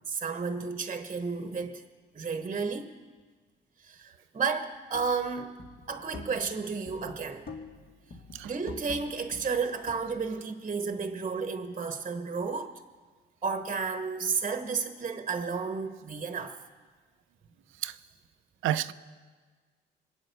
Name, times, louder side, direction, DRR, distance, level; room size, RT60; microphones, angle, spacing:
voice 1, 0.1-1.8 2.1-3.0 3.8-5.6 5.9-7.5 8.1-12.7 13.4-16.6, right 5 dB, 35° right, 1.0 m, -32 dB
sound 1, 4.9-5.2 5.6-6.6 6.9-7.8 8.1-10.3, left 3 dB, 50° left, 2.0 m, -45 dB
voice 2, 18.6-18.9, right 12 dB, 85° right, 0.6 m, -29 dB
23.0 x 8.9 x 6.7 m
cardioid pair, 90°, 20 cm